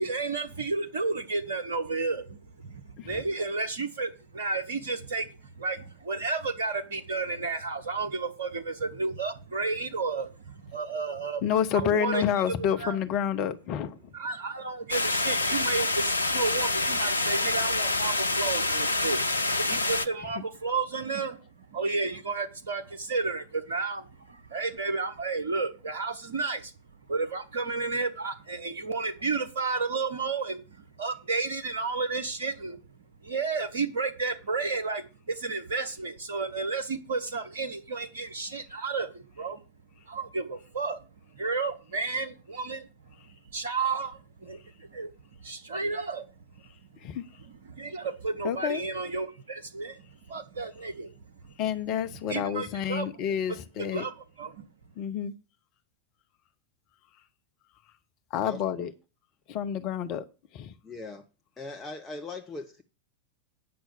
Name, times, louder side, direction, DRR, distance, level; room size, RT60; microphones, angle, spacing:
voice 1, 0.0-5.3 5.6-13.0 14.1-19.3 19.6-21.4 21.7-26.7 27.1-30.6 31.0-32.8 33.2-39.6 40.1-41.0 41.3-42.9 43.5-45.1 45.4-46.3 47.7-50.0 50.3-51.1 52.3-53.1 53.9-54.7, right 4 dB, 65° right, 1.0 m, -32 dB
voice 2, 11.4-14.0 47.0-47.2 48.4-48.8 51.6-54.1 55.0-55.3 58.3-58.9 59.5-60.2 60.5-60.7, left 9 dB, 40° left, 1.0 m, -29 dB
sound 1, 14.9-20.1, left 2 dB, 80° left, 0.5 m, -27 dB
voice 3, 60.8-61.2 61.6-62.8, left 3 dB, 15° left, 1.0 m, -39 dB
9.6 x 6.1 x 6.9 m
figure-of-eight pair, 90°, 0 cm